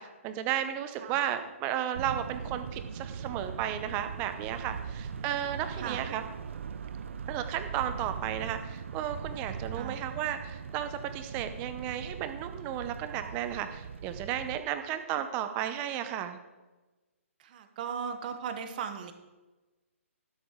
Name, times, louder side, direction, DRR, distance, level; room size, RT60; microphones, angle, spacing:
voice 1, 0.0-6.2 7.3-16.4, right 10 dB, 20° right, 10 dB, 0.8 m, -34 dB
sound 1, 1.9-14.6, right 6 dB, 60° right, 0.6 m, -40 dB
voice 2, 9.7-10.0 17.4-19.1, right 7 dB, 35° right, 8 dB, 1.2 m, -38 dB
12.5 x 10.0 x 3.7 m, 1.2 s
hypercardioid pair, 155°, 8 cm